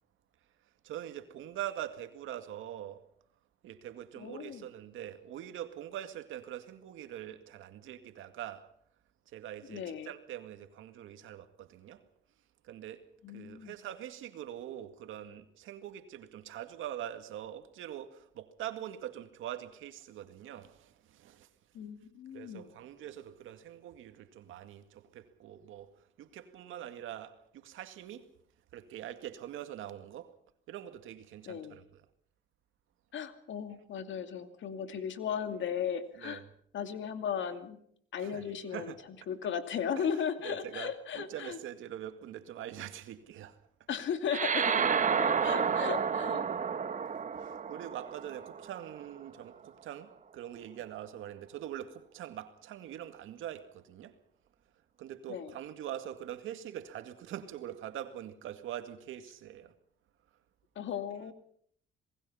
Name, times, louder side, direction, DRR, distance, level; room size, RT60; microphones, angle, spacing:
voice 1, 0.8-3.1 3.6-8.7 9.3-12.0 12.6-21.5 22.3-28.3 28.7-30.3 30.7-32.0 36.1-36.5 38.2-39.0 39.9-40.1 40.4-43.6 47.4-54.2 55.0-59.7, right 11 dB, 85° right, 2.1 m, -43 dB
voice 2, 4.2-4.6 9.7-10.1 13.2-13.7 21.7-22.7 31.5-31.8 33.1-36.4 36.7-37.8 38.1-38.9 39.3-41.6 43.9-44.9 45.2-46.5 55.3-55.5 60.8-61.3, left 7 dB, 70° left, 2.5 m, -36 dB
sound 1, 44.3-49.0, right 6 dB, 40° right, 1.2 m, -31 dB
28.0 x 19.5 x 5.7 m
cardioid pair, 90°, 20 cm